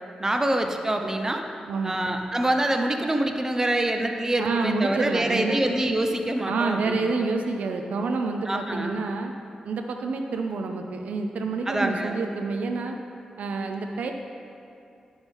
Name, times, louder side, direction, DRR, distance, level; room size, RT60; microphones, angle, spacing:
voice 1, 0.2-1.4 1.8-7.0 8.5-9.0 11.7-12.1, right 1 dB, 20° right, 4 dB, 0.7 m, -25 dB
voice 2, 1.7-2.0 4.4-5.6 6.5-9.3 9.6-13.0 13.4-14.1, right 3 dB, 80° right, 4 dB, 0.5 m, -28 dB
10.5 x 6.2 x 3.5 m, 2.5 s
cardioid pair, 70°, 2 cm